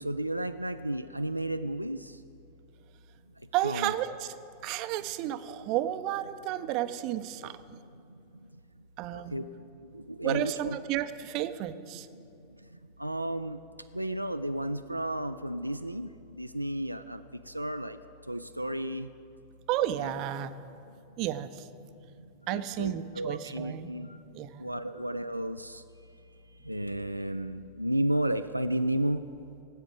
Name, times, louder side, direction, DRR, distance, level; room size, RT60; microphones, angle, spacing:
voice 1, 0.0-2.1 3.6-3.9 9.1-9.5 9.9-10.8 13.0-13.6 13.9-18.0 18.3-19.1 20.0-20.1 22.5-24.2 24.6-25.8 26.7-29.2, right 1 dB, 90° right, 9 dB, 0.3 m, -32 dB
voice 2, 3.5-4.3 4.6-7.6 9.0-9.4 10.2-12.1 19.7-20.5 21.2-21.7 22.5-23.9 24.3-24.7, right 13 dB, 40° right, 12 dB, 0.6 m, -32 dB
17.5 x 8.1 x 5.2 m, 2.7 s
figure-of-eight pair, 90°, 0 cm